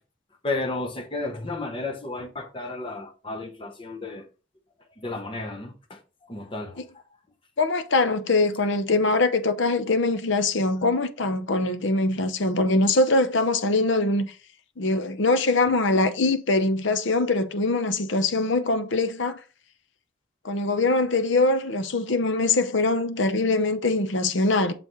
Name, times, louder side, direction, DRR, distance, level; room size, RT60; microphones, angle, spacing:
voice 1, 0.4-4.2 5.0-6.0 6.3-7.0, left 2 dB, 25° left, 0.8 m, -33 dB
voice 2, 7.6-14.3 14.8-19.4 20.4-24.7, left 2 dB, 65° left, 0.8 m, -23 dB
6.8 x 5.7 x 3.1 m
head